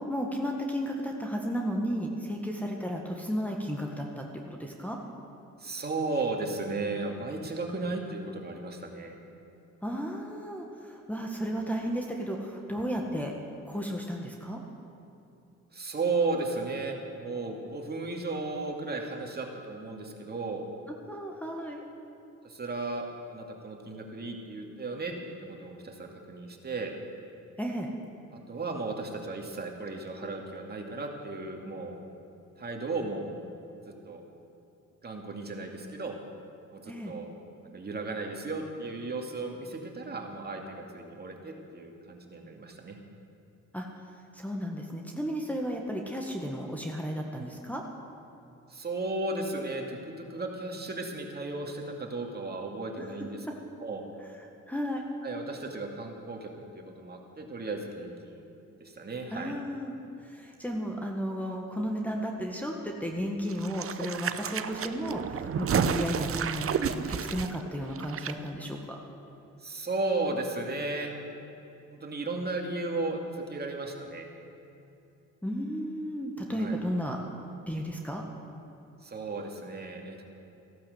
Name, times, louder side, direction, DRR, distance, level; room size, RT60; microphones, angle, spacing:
voice 1, 0.0-5.0 9.8-13.3 13.6-14.6 21.1-21.8 27.6-27.9 36.9-37.1 43.7-43.9 44.3-47.8 54.7-55.0 59.3-59.9 60.3-69.0 75.4-77.2 77.7-78.2, equal, 5° left, -1 dB, 1.7 m, -33 dB
voice 2, 5.6-9.1 15.7-20.6 22.4-23.1 23.3-26.9 28.3-32.0 32.6-33.3 33.9-34.2 35.0-36.1 36.7-37.3 37.6-43.0 48.7-53.5 53.8-54.0 55.2-58.4 58.8-59.6 69.6-71.1 71.9-74.3 76.5-76.8 79.0-80.2, right 3 dB, 30° right, 2 dB, 2.4 m, -35 dB
sound 1, 63.5-68.3 68.6-68.7, right 7 dB, 45° right, 0.8 m, -31 dB
15.0 x 12.0 x 8.0 m, 2.9 s
cardioid pair, 90°, 30 cm